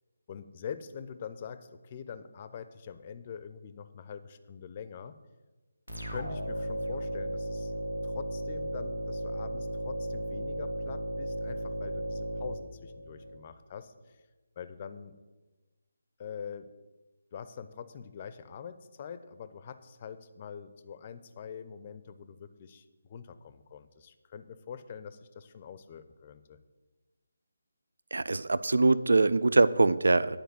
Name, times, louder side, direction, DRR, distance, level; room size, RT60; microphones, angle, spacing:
voice 1, 0.3-5.2 6.1-7.7 8.0-14.2 14.6-15.2 16.2-16.7 17.3-26.6, left 7 dB, 30° left, 12 dB, 0.6 m, -44 dB
sound 1, 5.9-13.4, right 1 dB, 85° right, 1.7 m, -35 dB
voice 2, 28.1-30.4, right 3 dB, 65° right, 17 dB, 0.4 m, -23 dB
10.5 x 4.9 x 7.6 m, 1.2 s
figure-of-eight pair, 150°, 0 cm